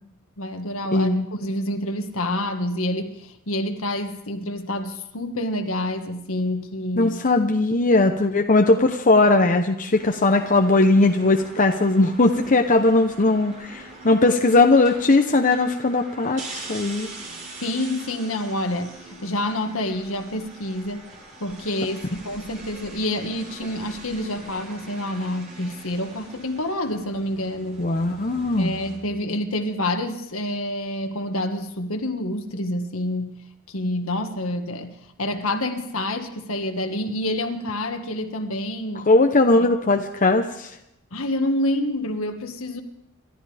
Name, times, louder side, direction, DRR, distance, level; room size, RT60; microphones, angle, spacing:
voice 1, 0.4-7.1 17.6-21.1 21.4-27.8 28.6-33.3 33.7-39.1 39.5-39.7 41.1-42.8, left 1 dB, 70° left, 5 dB, 1.7 m, -28 dB
voice 2, 0.9-1.3 7.0-17.1 27.8-28.7 39.1-40.7, left 2 dB, 40° left, 4 dB, 0.9 m, -19 dB
sound 1, 10.0-29.0, right 2 dB, 35° right, 5.0 m, -42 dB
28.5 x 13.5 x 3.5 m, 0.83 s
head